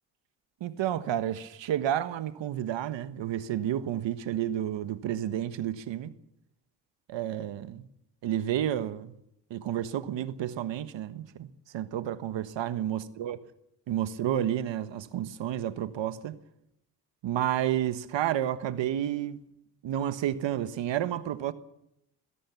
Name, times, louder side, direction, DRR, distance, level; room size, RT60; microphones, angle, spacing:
voice 1, 0.6-6.1 7.1-7.9 8.2-9.1 9.5-11.5 11.7-13.4 13.9-16.4 17.2-19.4 19.8-21.5, right 11 dB, 70° right, 1.4 m, -30 dB
22.5 x 17.0 x 7.1 m
supercardioid pair, 65°, 45 cm